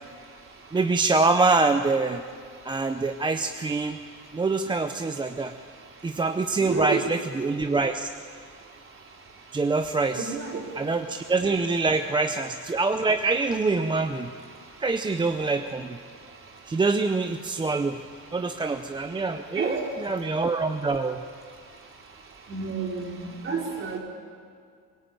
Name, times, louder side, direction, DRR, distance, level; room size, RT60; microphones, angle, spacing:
voice 1, 0.7-2.2 2.6-4.0 4.3-5.5 6.0-8.1 9.5-10.3 10.8-14.3 14.8-16.0 16.7-18.0 18.3-21.2, right 3 dB, 15° right, 7 dB, 0.6 m, -25 dB
voice 2, 6.6-7.0 10.1-10.5 19.6-19.9 22.5-24.0, right 5 dB, 35° right, 0 dB, 4.2 m, -30 dB
23.0 x 21.0 x 8.9 m, 2.2 s
cardioid pair, 165°, 36 cm